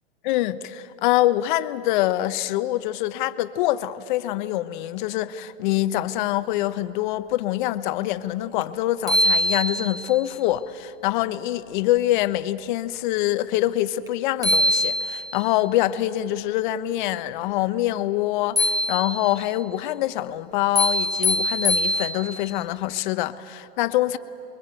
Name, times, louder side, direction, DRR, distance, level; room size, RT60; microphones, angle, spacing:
voice 1, 0.2-24.2, left 14 dB, 45° left, 1.1 m, -25 dB
sound 1, 8.6-8.7 9.1-10.2 14.1-14.2 14.4-15.5 18.6-19.5 20.7-22.5, left 1 dB, 10° right, 2.2 m, -23 dB
28.0 x 23.0 x 9.1 m
hypercardioid pair, 135°, 33 cm